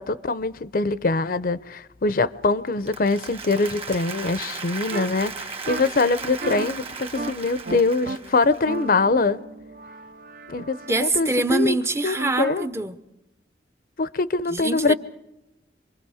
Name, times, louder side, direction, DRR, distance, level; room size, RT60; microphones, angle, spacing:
voice 1, 0.0-9.4 10.5-11.7 12.0-12.6 14.0-14.9, left 3 dB, 55° left, 0.7 m, -23 dB
Applause, 2.7-8.9, right 5 dB, 35° right, 1.4 m, -36 dB
sound 1, 4.9-5.1 5.7-5.8 6.4-6.7 7.2-7.3 7.7-8.2 8.7-10.9 12.2-12.7, right 2 dB, 60° right, 0.8 m, -33 dB
voice 2, 10.9-13.0 14.5-14.9, right 2 dB, 15° right, 0.7 m, -24 dB
27.0 x 22.5 x 4.9 m
head